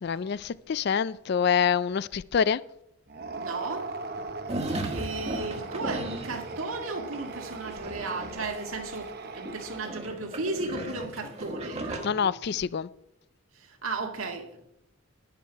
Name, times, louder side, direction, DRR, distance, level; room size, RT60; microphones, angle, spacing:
voice 1, 0.0-2.6 12.0-12.9, left 7 dB, 50° left, 0.3 m, -26 dB
sound 1, 3.1-10.3, right 3 dB, 45° right, 0.8 m, -39 dB
voice 2, 3.4-3.9 4.5-12.6 13.6-14.7, right 3 dB, 75° right, 1.9 m, -35 dB
sound 2, 4.5-6.6 7.0-9.1 9.4-12.1, right 2 dB, 30° right, 1.3 m, -36 dB
11.5 x 10.5 x 4.6 m
head